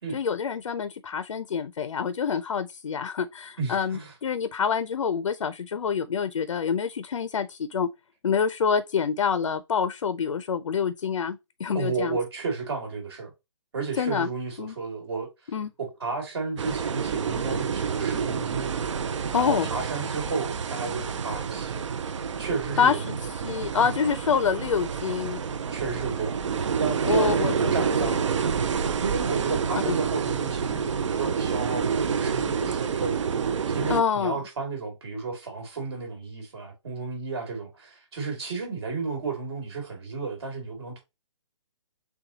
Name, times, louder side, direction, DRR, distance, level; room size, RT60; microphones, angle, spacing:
voice 1, 0.1-7.9 8.2-12.2 14.0-14.3 14.6-14.7 15.5-15.7 19.3-19.7 22.8-23.2 23.4-25.4 27.1-27.7 28.0-28.1 29.9-30.0 33.9-34.4, left 6 dB, 85° left, 0.5 m, -26 dB
voice 2, 3.6-4.1 11.7-13.3 13.7-15.5 15.8-18.7 19.3-21.9 22.4-23.0 25.7-28.5 29.0-33.3 33.7-41.0, right 4 dB, 55° right, 2.4 m, -32 dB
sound 1, 16.6-34.0, right 6 dB, 70° right, 0.5 m, -28 dB
6.8 x 2.3 x 2.8 m
hypercardioid pair, 160°, 16 cm